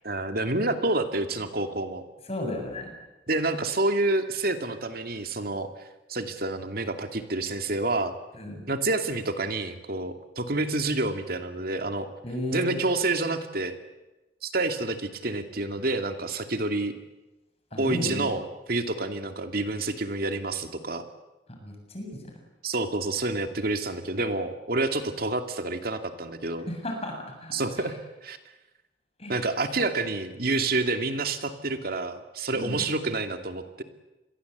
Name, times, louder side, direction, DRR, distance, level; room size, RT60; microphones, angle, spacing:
voice 1, 0.0-2.0 3.3-5.7 6.1-8.1 8.7-12.1 12.5-13.8 14.4-16.9 17.8-21.0 22.6-26.7 27.5-28.4 29.3-33.8, right 2 dB, 55° right, 7 dB, 2.5 m, -28 dB
voice 2, 2.3-2.9 8.3-8.6 12.2-12.8 17.7-18.3 21.6-22.3 26.7-27.1 27.4-27.9 29.2-29.4 32.5-32.9, left 1 dB, 35° left, 3 dB, 7.5 m, -34 dB
28.0 x 22.0 x 8.2 m, 1.0 s
head